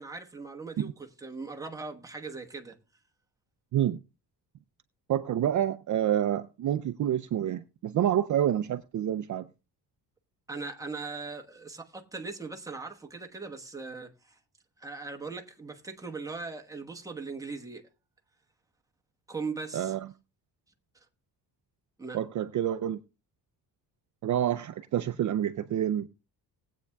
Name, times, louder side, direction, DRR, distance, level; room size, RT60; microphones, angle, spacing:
voice 1, 0.0-2.8 10.5-14.4 14.8-17.8 19.3-19.9 22.0-22.2, right 4 dB, 10° right, 1.1 m, -39 dB
voice 2, 5.1-9.5 19.7-20.0 22.1-23.0 24.2-26.1, right 11 dB, 45° right, 0.5 m, -28 dB
19.5 x 8.4 x 2.3 m
cardioid pair, 145°, 41 cm